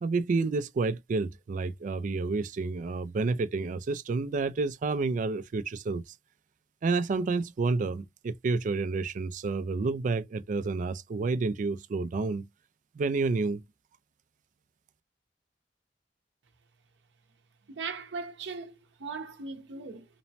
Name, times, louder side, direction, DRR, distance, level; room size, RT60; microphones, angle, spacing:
voice 1, 0.0-6.1 6.8-12.5 12.9-13.6, right 3 dB, 45° right, 0.3 m, -29 dB
voice 2, 17.7-20.1, right 4 dB, 85° right, 0.6 m, -39 dB
2.9 x 2.1 x 2.6 m
head